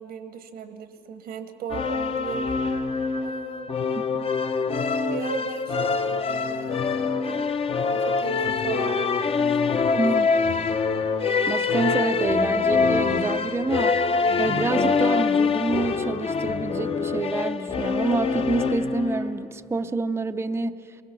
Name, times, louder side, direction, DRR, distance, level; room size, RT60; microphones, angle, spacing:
voice 1, 0.0-2.5 3.2-4.2 5.1-7.5 7.9-9.1 9.5-10.0, right 7 dB, 75° right, 8 dB, 1.2 m, -37 dB
sound 1, 1.7-19.4, left 4 dB, 35° left, 0.8 m, -24 dB
voice 2, 10.0-10.3 11.5-14.0 14.4-20.8, right 3 dB, 15° right, 10 dB, 0.5 m, -27 dB
22.5 x 22.0 x 6.0 m, 3.0 s
cardioid pair, 110°, 17 cm